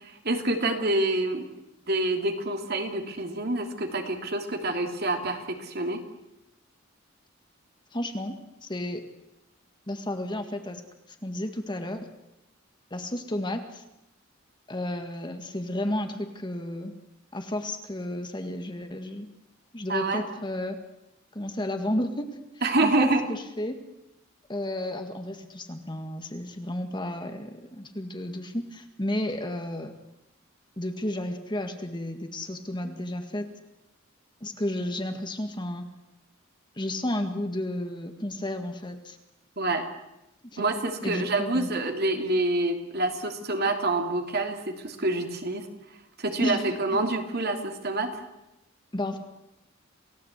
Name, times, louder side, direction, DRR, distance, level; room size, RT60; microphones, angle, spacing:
voice 1, 0.2-1.4 1.9-6.0 19.9-20.3 22.6-23.3 39.6-39.9 40.6-45.7 46.2-48.2, right 2 dB, 50° right, 5 dB, 2.9 m, -27 dB
voice 2, 7.9-8.4 8.6-9.0 9.9-10.8 11.1-12.1 12.9-13.8 14.7-16.9 17.3-19.3 19.7-20.8 21.3-22.4 22.8-23.8 24.5-29.9 30.8-33.5 34.4-35.9 36.8-39.2 40.5-40.6 41.0-41.7 46.4-46.6 46.9-47.0 48.9-49.2, left 1 dB, 20° left, 6 dB, 1.9 m, -32 dB
28.5 x 17.0 x 8.3 m, 0.91 s
head